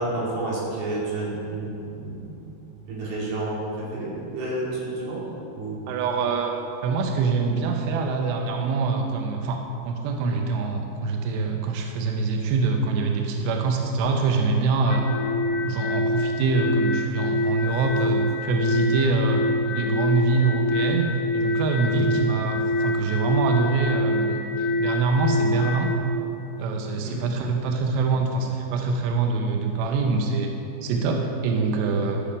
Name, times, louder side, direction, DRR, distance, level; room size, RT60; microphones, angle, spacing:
voice 1, 0.0-2.4 2.9-5.2 5.5-5.8 21.9-22.2 27.0-27.2, right 2 dB, 55° right, -6 dB, 3.9 m, -30 dB
voice 2, 5.9-6.5 6.8-15.1 15.6-25.9 26.6-30.5 30.8-32.2, right 4 dB, 85° right, 3 dB, 2.4 m, -24 dB
sound 1, 14.9-25.9, left 1 dB, 75° left, 3.1 m, -26 dB
12.0 x 7.1 x 5.1 m, 2.8 s
omnidirectional pair, 5.7 m